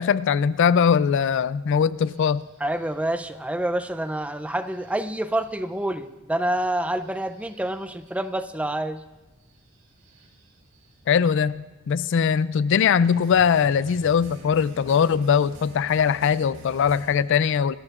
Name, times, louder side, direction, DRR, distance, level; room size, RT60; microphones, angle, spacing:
voice 1, 0.0-2.4 11.1-17.8, left 7 dB, 60° left, 17 dB, 0.3 m, -21 dB
sound 1, 2.0-2.9 4.2-5.1 5.4-5.6 6.9-8.3 9.5-10.9 13.0-17.2, right 1 dB, 85° right, 3.4 m, -46 dB
voice 2, 2.6-9.0, right 1 dB, 5° right, 11 dB, 0.4 m, -27 dB
26.5 x 13.0 x 2.5 m, 1.1 s
head